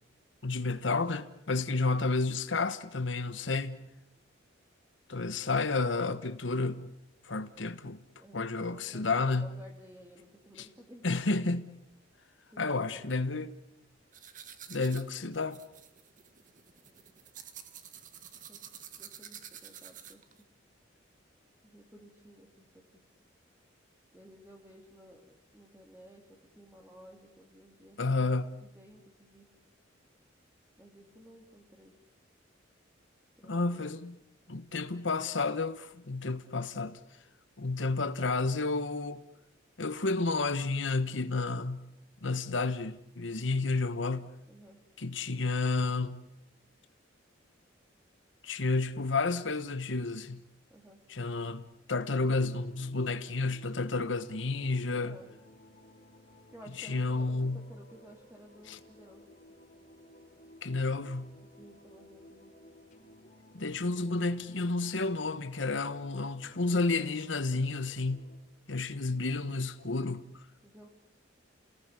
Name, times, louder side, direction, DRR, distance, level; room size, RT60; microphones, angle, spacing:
voice 1, 0.4-3.8 5.1-6.9 7.2-8.0 8.3-9.5 10.6-10.7 11.0-11.7 12.6-13.5 14.7-15.6 28.0-28.5 33.4-34.2 34.5-37.0 37.6-39.2 39.8-41.9 42.2-44.3 45.0-46.2 48.4-50.4 51.1-55.2 56.8-57.6 58.7-58.8 60.6-61.3 63.5-68.2 68.7-70.3, left 3 dB, 75° left, 1.2 m, -31 dB
voice 2, 8.1-11.1 12.5-13.2 15.2-15.3 18.5-18.6 19.0-20.2 21.6-23.0 24.1-28.3 28.6-29.5 30.8-31.9 33.4-33.8 44.5-44.8 50.7-51.0 54.9-55.3 56.5-59.2 61.6-62.5 70.6-70.9, equal, 10° right, 2.7 m, -55 dB
sound 1, 14.1-20.4, right 9 dB, 45° right, 1.9 m, -49 dB
sound 2, 52.0-68.4, left 1 dB, 40° left, 2.9 m, -57 dB
29.5 x 18.5 x 9.7 m
head